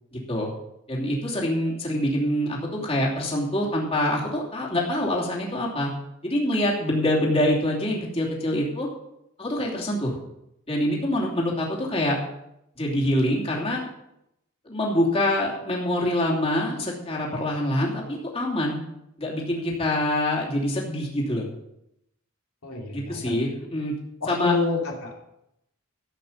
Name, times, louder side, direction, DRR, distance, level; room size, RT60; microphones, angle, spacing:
voice 1, 0.1-0.5 0.9-5.9 6.2-8.9 9.4-10.2 10.7-12.2 12.8-13.8 14.6-18.8 19.2-21.5 22.9-23.9 24.3-24.6, left 1 dB, 30° left, -3 dB, 2.9 m, -25 dB
voice 2, 22.6-23.3 24.2-25.3, left 2 dB, 90° left, -1 dB, 3.0 m, -28 dB
14.0 x 8.5 x 5.6 m, 0.83 s
head